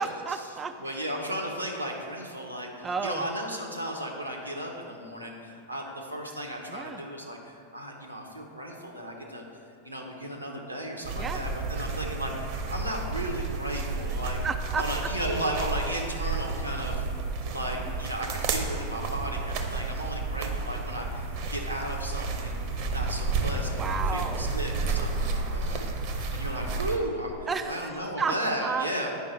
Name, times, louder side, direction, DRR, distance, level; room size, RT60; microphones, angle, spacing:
voice 1, 0.0-0.7 2.8-3.3 6.7-7.0 11.2-11.4 14.0-14.8 17.9-18.0 23.7-24.5 27.5-28.3 28.6-28.9, right 5 dB, 20° right, 7 dB, 0.3 m, -32 dB
voice 2, 0.8-9.4 9.8-14.4 14.8-17.0 17.5-22.6 22.9-25.9 26.1-27.3 27.6-29.1, right 1 dB, 90° right, -1 dB, 1.0 m, -35 dB
sound 1, 11.0-27.0, right 3 dB, 45° right, 0.8 m, -31 dB
9.5 x 5.1 x 4.4 m, 2.4 s
figure-of-eight pair, 90°, 0 cm